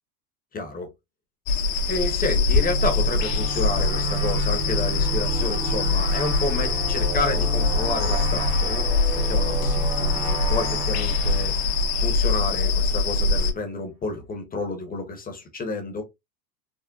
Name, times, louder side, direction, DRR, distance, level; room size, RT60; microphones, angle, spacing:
voice 1, 0.5-0.9 1.9-8.9 9.3-11.6 12.0-16.0, left 3 dB, 20° left, 0.8 m, -30 dB
sound 1, 1.5-13.5, left 3 dB, 45° left, 0.7 m, -23 dB
sound 2, 2.5-12.8, right 4 dB, 15° right, 0.4 m, -33 dB
3.8 x 2.1 x 2.3 m
hypercardioid pair, 105°, 49 cm